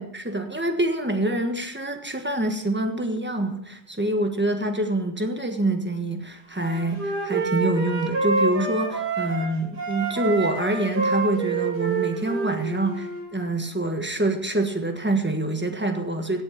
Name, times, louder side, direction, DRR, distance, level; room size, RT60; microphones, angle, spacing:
voice 1, 0.0-16.4, right 1 dB, 5° right, 5 dB, 1.3 m, -26 dB
Wind instrument woodwind instrument, 6.6-9.5 9.8-13.3, right 4 dB, 70° right, 3.7 m, -27 dB
16.5 x 8.6 x 5.9 m, 0.78 s
omnidirectional pair, 1.9 m